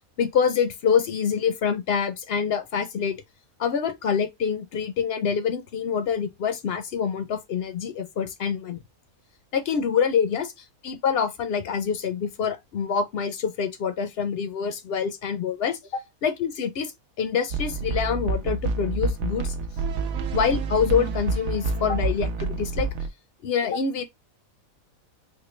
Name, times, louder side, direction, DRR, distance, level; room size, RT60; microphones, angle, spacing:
voice 1, 0.2-3.2 3.6-8.8 9.5-15.7 16.2-16.9 17.2-19.5 20.3-22.9 23.4-24.0, left 7 dB, 60° left, 0.6 m, -26 dB
sound 1, 17.5-23.1, right 3 dB, 85° right, 1.0 m, -28 dB
4.4 x 2.2 x 3.1 m
omnidirectional pair, 1.5 m